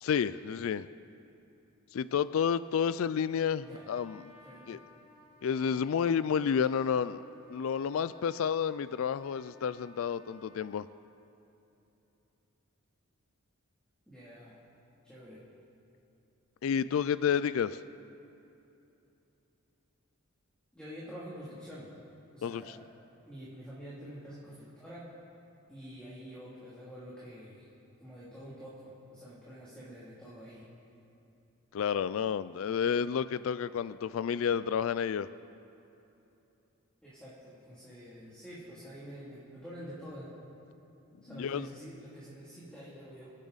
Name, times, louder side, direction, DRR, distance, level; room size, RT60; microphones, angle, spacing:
voice 1, 0.0-0.9 1.9-4.3 4.7-4.8 5.4-7.2 7.5-10.9 16.6-17.8 22.4-22.6 31.7-35.3 41.3-41.7, left 7 dB, 65° left, 15 dB, 0.3 m, -30 dB
Trumpet, 3.6-10.7, left 1 dB, 20° right, 4.0 m, -59 dB
voice 2, 4.4-4.8 14.1-14.6 15.0-15.4 20.7-21.9 22.3-22.8 23.2-25.1 25.7-27.7 28.0-30.7 37.0-40.3 41.2-43.3, equal, 5° left, -9 dB, 2.7 m, -47 dB
27.5 x 10.5 x 4.0 m, 2.9 s
head